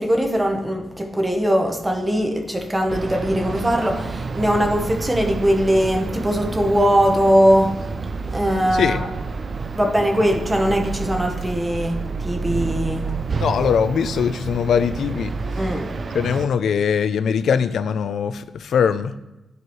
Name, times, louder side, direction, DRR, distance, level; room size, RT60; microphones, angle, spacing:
voice 1, 0.0-7.8 8.3-9.1 9.7-13.0 15.6-15.8, equal, 10° right, 2 dB, 1.0 m, -20 dB
sound 1, 2.9-16.5, right 4 dB, 35° right, 0.4 m, -29 dB
voice 2, 8.7-9.0 13.4-15.3 16.1-19.1, left 7 dB, 70° left, 12 dB, 0.4 m, -21 dB
13.5 x 4.6 x 3.2 m, 0.99 s
wide cardioid pair, 170°, 0 cm